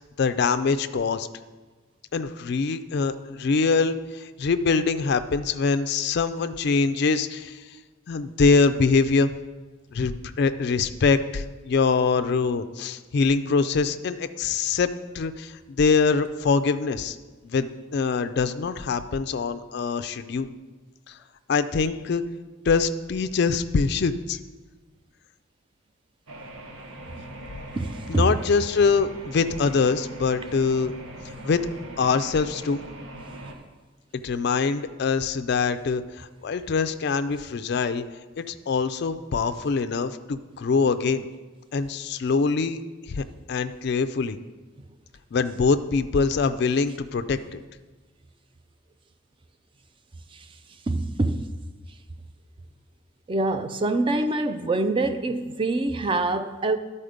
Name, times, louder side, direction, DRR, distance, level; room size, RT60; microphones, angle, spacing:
voice 1, 0.2-1.3 2.1-7.6 8.1-9.3 9.9-17.2 17.4-20.5 21.1-21.2 21.5-22.2 22.7-24.4 28.1-30.9 31.4-31.6 32.0-32.9 34.2-38.0 38.4-41.3 41.7-42.8 43.1-44.4 45.3-47.6, left 4 dB, 50° left, 10 dB, 0.3 m, -24 dB
sound 1, 26.3-33.6, right 1 dB, 80° right, 1.0 m, -41 dB
voice 2, 27.8-28.3 50.3-50.5 50.9-51.5 53.3-56.8, right 2 dB, 25° right, 9 dB, 0.4 m, -25 dB
12.0 x 4.2 x 5.1 m, 1.3 s
head